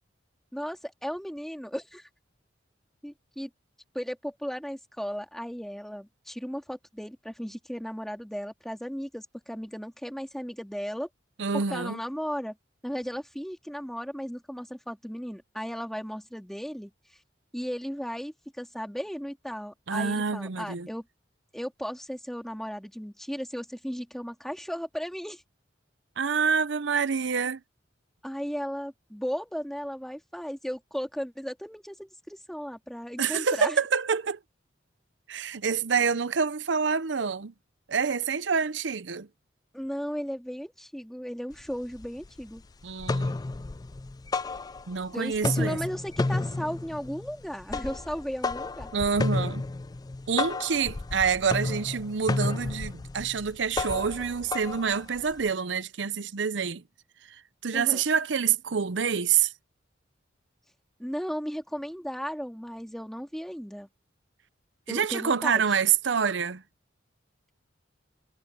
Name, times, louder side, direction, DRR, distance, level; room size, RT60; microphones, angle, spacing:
voice 1, 0.5-2.1 3.0-3.5 3.9-11.1 11.5-12.6 12.8-16.9 17.5-21.0 21.5-25.4 28.2-33.8 39.7-42.6 45.1-48.9 57.7-58.0 61.0-63.9 64.9-65.6, equal, ahead, 2.6 m, -35 dB
voice 2, 11.4-12.0 19.9-20.9 26.2-27.6 33.2-34.4 35.3-37.5 37.9-39.3 42.8-43.4 44.9-45.8 48.9-49.6 50.3-56.8 57.3-59.5 64.9-66.6, right 6 dB, 70° right, 0.7 m, -27 dB
sound 1, 41.5-41.6 42.0-42.6 42.9-45.1 45.3-55.5, left 3 dB, 20° left, 0.3 m, -32 dB
head